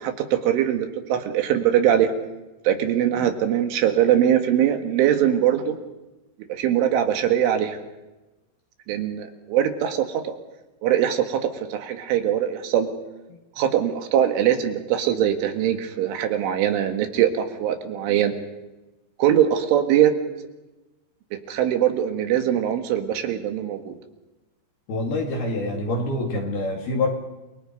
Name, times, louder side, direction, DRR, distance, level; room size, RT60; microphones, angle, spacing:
voice 1, 0.0-2.1 2.7-5.8 6.5-7.8 8.9-10.3 10.8-12.9 13.6-18.3 19.2-20.1 21.5-24.0, right 10 dB, 70° right, 6 dB, 4.1 m, -22 dB
voice 2, 24.9-27.1, left 2 dB, 55° left, 1 dB, 4.1 m, -26 dB
29.5 x 23.5 x 5.3 m, 1.0 s
omnidirectional pair, 5.9 m